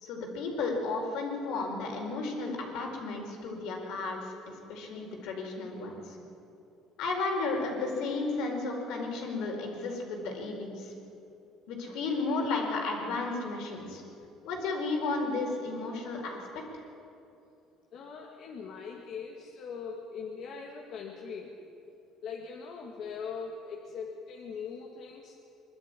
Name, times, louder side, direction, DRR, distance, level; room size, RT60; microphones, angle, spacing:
voice 1, 0.0-6.2 7.0-10.9 11.7-14.0 14.4-16.4 16.7-16.8, left 3 dB, 75° left, 1 dB, 4.7 m, -33 dB
voice 2, 17.9-21.6 22.2-25.4, left 5 dB, 55° left, -1 dB, 2.2 m, -41 dB
23.5 x 12.5 x 9.9 m, 2.7 s
cardioid pair, 135°, 0 cm